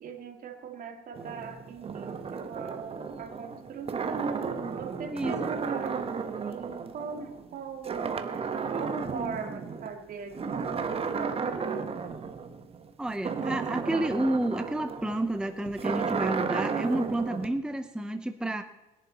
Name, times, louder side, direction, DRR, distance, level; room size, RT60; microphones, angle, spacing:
voice 1, 0.0-4.3 4.7-6.0 6.4-11.9, right 5 dB, 55° right, 5 dB, 2.5 m, -41 dB
sound 1, 1.1-7.6 7.8-9.9 10.3-17.5, right 5 dB, 35° right, 1.2 m, -33 dB
voice 2, 13.0-18.6, right 1 dB, 5° right, 8 dB, 0.7 m, -30 dB
20.5 x 11.0 x 4.2 m, 1.1 s
cardioid pair, 110°, 17 cm